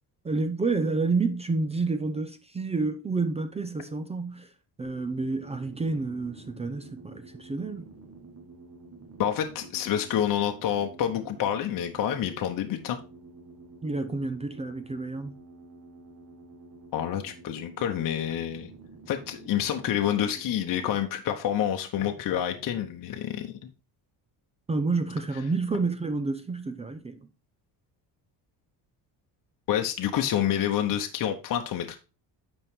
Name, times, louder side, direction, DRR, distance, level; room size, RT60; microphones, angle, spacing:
voice 1, 0.2-4.5 4.8-7.9 13.8-15.3 24.7-27.2, right 3 dB, 15° right, 0.4 m, -29 dB
sound 1, 4.8-21.0, right 3 dB, 35° right, 1.4 m, -49 dB
voice 2, 9.2-13.0 16.9-18.7 19.1-23.7 29.7-32.0, left 10 dB, 50° left, 0.9 m, -28 dB
8.4 x 5.4 x 3.6 m
cardioid pair, 155°, 43 cm